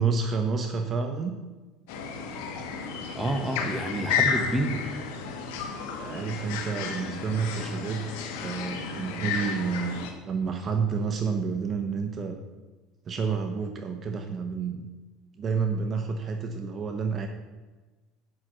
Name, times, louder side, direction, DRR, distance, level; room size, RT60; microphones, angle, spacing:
voice 1, 0.0-1.4 6.0-8.1 8.4-12.4 13.1-14.9 15.4-17.3, right 5 dB, 30° right, 5 dB, 0.8 m, -29 dB
sound 1, 1.9-10.1, left 6 dB, 85° left, 1.4 m, -32 dB
voice 2, 3.1-4.9, right 1 dB, 5° right, 4 dB, 1.2 m, -28 dB
7.8 x 5.9 x 7.8 m, 1.2 s
cardioid pair, 130°, 0 cm